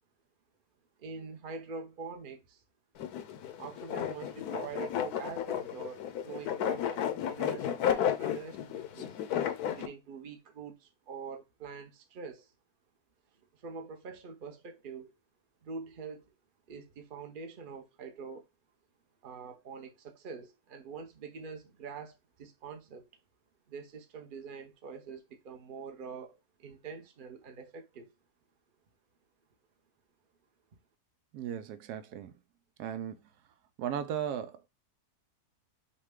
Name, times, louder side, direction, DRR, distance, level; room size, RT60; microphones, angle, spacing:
voice 1, 1.0-2.6 3.6-9.1 9.7-12.5 13.5-15.1 15.6-16.3 16.7-18.4 19.2-23.0 23.7-28.1, right 5 dB, 40° right, 0.8 m, -45 dB
sound 1, 3.0-9.9, left 9 dB, 80° left, 1.2 m, -33 dB
voice 2, 31.3-32.4 32.8-33.3 33.8-34.7, right 9 dB, 90° right, 1.1 m, -36 dB
6.4 x 2.3 x 3.6 m
omnidirectional pair, 1.6 m